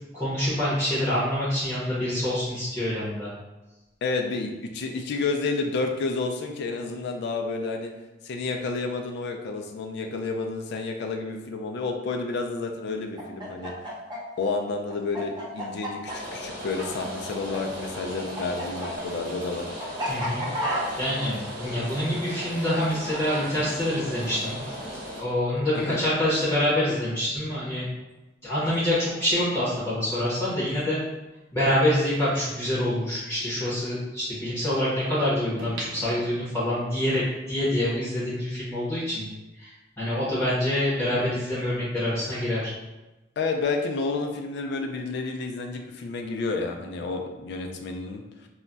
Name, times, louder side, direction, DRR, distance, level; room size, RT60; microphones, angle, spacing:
voice 1, 0.1-3.3 20.1-20.5 21.0-24.6 25.2-27.9 28.4-31.0 31.5-39.3 39.6-39.7 40.0-42.7, left 1 dB, 15° left, -10 dB, 0.7 m, -26 dB
voice 2, 4.0-7.9 8.2-13.7 14.4-16.0 16.3-19.7 25.7-26.0 43.4-48.2, left 3 dB, 60° left, 4 dB, 0.3 m, -30 dB
Chicken rooster, 13.1-17.6 17.8-23.5, equal, 25° right, 0.6 m, -33 dB
Rain, 16.1-25.2, equal, 90° right, 1.1 m, -37 dB
sound 1, 35.6-36.9 37.4-37.5, right 2 dB, 65° right, 0.7 m, -39 dB
2.2 x 2.1 x 3.8 m, 1.1 s
head